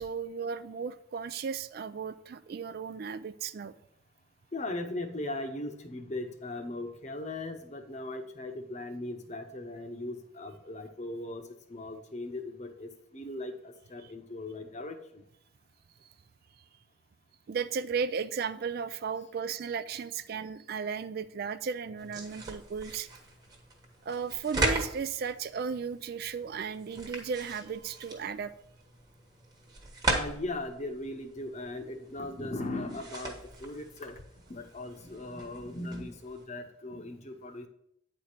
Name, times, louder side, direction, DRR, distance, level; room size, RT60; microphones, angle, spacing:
voice 1, 0.0-3.7 14.0-14.1 16.0-16.1 17.5-23.1 24.0-28.5, right 6 dB, 45° right, 14 dB, 0.3 m, -35 dB
voice 2, 4.5-11.4 11.7-15.2 30.1-34.2 34.5-37.7, left 2 dB, 35° left, 6 dB, 0.8 m, -38 dB
sound 1, 22.0-36.4, right 2 dB, 20° right, 1.2 m, -38 dB
9.1 x 4.4 x 5.0 m, 0.74 s
head